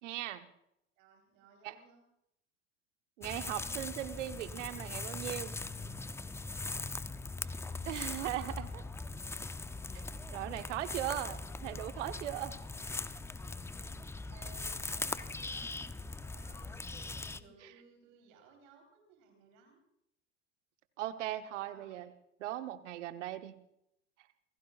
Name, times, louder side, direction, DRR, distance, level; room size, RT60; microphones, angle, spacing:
voice 1, 0.0-0.5 1.6-1.7 3.2-5.5 7.8-8.8 9.9-10.0 10.3-11.4 11.6-12.6 21.0-22.1 22.4-23.6, right 13 dB, 75° right, 9 dB, 1.1 m, -38 dB
voice 2, 1.0-2.0 7.4-8.0 8.7-9.0 11.0-11.2 14.3-16.8 17.3-19.8 21.6-22.0, right 6 dB, 60° right, 2 dB, 4.1 m, -60 dB
sound 1, 3.2-17.4, left 3 dB, 5° left, 0.5 m, -41 dB
28.5 x 16.5 x 2.5 m, 0.80 s
hypercardioid pair, 80°, 36 cm